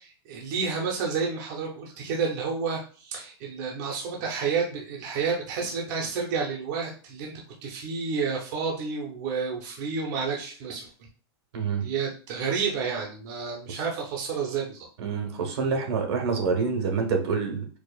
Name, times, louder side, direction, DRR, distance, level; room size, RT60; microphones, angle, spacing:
voice 1, 0.0-7.3 7.6-10.9 11.8-14.9, right 5 dB, 45° right, -1 dB, 0.7 m, -30 dB
voice 2, 11.5-11.9 15.0-17.7, right 5 dB, 75° right, 3 dB, 1.1 m, -27 dB
4.7 x 2.3 x 2.3 m, 0.39 s
supercardioid pair, 165°, 14 cm